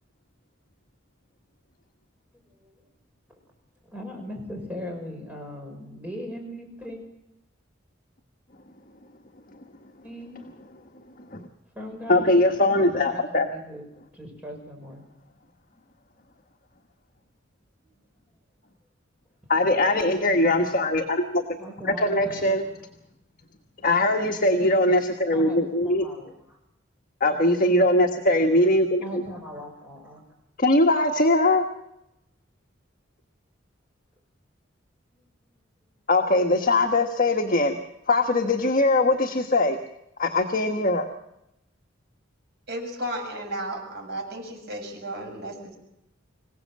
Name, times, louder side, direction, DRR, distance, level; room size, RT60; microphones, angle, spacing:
voice 1, 2.3-2.7 3.3-3.4 3.8-7.0 10.0-10.4 11.7-13.9 14.1-15.0 21.6-22.5 25.3-26.6 29.0-30.2, equal, 5° right, 1 dB, 5.9 m, -39 dB
voice 2, 12.1-13.5 19.5-21.4 21.8-22.6 23.8-26.0 27.2-29.2 30.6-31.6 36.1-37.8 38.1-39.8 40.2-41.1, left 2 dB, 45° left, 4 dB, 1.4 m, -21 dB
voice 3, 42.7-45.8, right 1 dB, 55° right, 1 dB, 7.3 m, -34 dB
26.0 x 17.0 x 7.6 m, 0.87 s
head